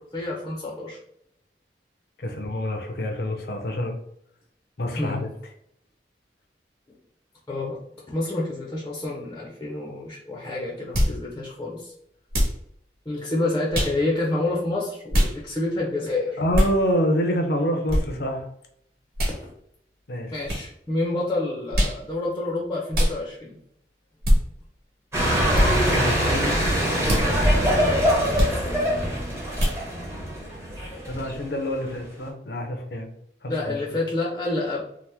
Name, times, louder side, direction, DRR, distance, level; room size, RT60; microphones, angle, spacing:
voice 1, 0.1-1.0 5.0-5.3 7.5-7.8 8.1-11.9 13.1-16.4 19.3-19.5 20.3-23.6 27.4-27.7 33.5-34.8, left 2 dB, 15° left, -4 dB, 0.5 m, -28 dB
voice 2, 2.2-3.9 4.8-5.3 16.4-18.5 20.1-20.3 25.8-26.5 31.1-33.1 33.4-33.8, equal, 60° left, 4 dB, 0.6 m, -26 dB
sound 1, 10.9-11.2 12.3-12.6 13.7-14.0 15.1-15.3 16.5-16.7 17.9-18.0 19.2-19.4 20.5-20.6 21.7-22.0 22.9-23.2 24.2-24.4 25.5-25.7 27.0-27.3 28.3-28.6 29.6-29.8, equal, 55° right, 1.2 m, -21 dB
sound 2, 25.1-32.0, equal, 15° right, 0.8 m, -23 dB
2.9 x 2.1 x 3.3 m, 0.72 s
head